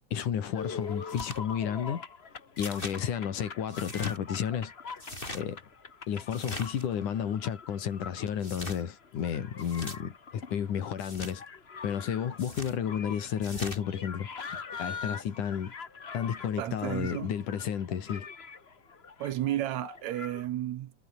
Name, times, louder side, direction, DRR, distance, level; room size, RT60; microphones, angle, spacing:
voice 1, 0.1-2.1 2.6-4.7 5.3-5.6 6.1-11.4 11.8-15.8 16.1-18.3, left 8 dB, 80° left, 3.8 m, -32 dB
sound 1, 0.5-20.5, left 5 dB, 55° left, 0.6 m, -44 dB
sound 2, 1.1-1.4 2.6-3.0 3.7-4.2 5.0-5.4 6.3-6.9 8.4-8.8 9.6-10.0 11.0-11.3 12.4-12.8 13.4-13.8, left 1 dB, 15° left, 6.1 m, -40 dB
voice 2, 16.6-17.3 19.2-20.9, right 13 dB, 70° right, 2.2 m, -32 dB
omnidirectional pair, 3.5 m